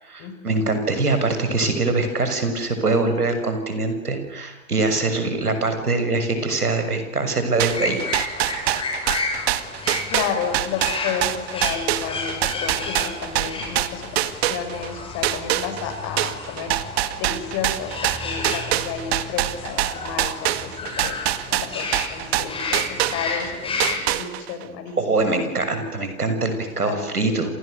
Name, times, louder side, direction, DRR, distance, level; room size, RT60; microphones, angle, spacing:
voice 1, 0.1-8.7 25.0-27.6, right 3 dB, 80° right, 8 dB, 6.7 m, -23 dB
sound 1, 7.6-14.9 15.2-23.5 23.8-24.6, right 14 dB, 45° right, 1.9 m, -24 dB
sound 2, 7.7-24.0, left 3 dB, 10° left, 7.0 m, -31 dB
voice 2, 9.9-16.7 17.2-25.4 26.9-27.5, left 7 dB, 35° left, 7 dB, 6.8 m, -32 dB
29.5 x 28.0 x 6.7 m, 0.96 s
figure-of-eight pair, 115°, 44 cm